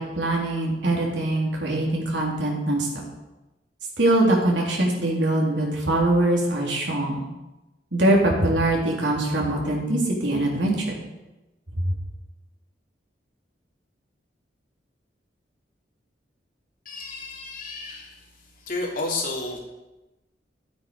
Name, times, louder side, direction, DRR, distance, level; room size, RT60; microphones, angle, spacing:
voice 1, 0.0-3.0 4.0-7.2 7.9-10.7 11.8-11.9, right 1 dB, 85° right, -2 dB, 3.3 m, -22 dB
voice 2, 16.8-18.2 18.7-19.6, left 3 dB, 50° left, -1 dB, 2.8 m, -31 dB
13.0 x 8.5 x 5.3 m, 1.0 s
head